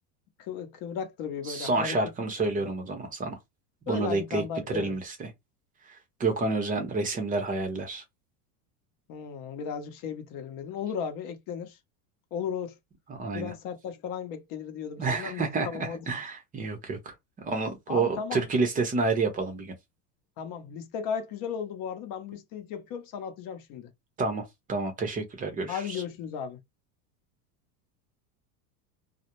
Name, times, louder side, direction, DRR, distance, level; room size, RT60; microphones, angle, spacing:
voice 1, 0.4-2.0 2.5-2.7 3.9-5.0 9.1-11.8 12.3-12.8 13.3-16.0 17.9-18.4 20.4-23.9 25.7-26.6, left 7 dB, 45° left, 0.8 m, -35 dB
voice 2, 1.5-3.4 3.9-5.3 5.8-8.0 13.1-13.5 15.0-19.7 24.2-26.0, right 3 dB, 20° right, 0.6 m, -29 dB
2.3 x 2.0 x 2.9 m
supercardioid pair, 130°, 48 cm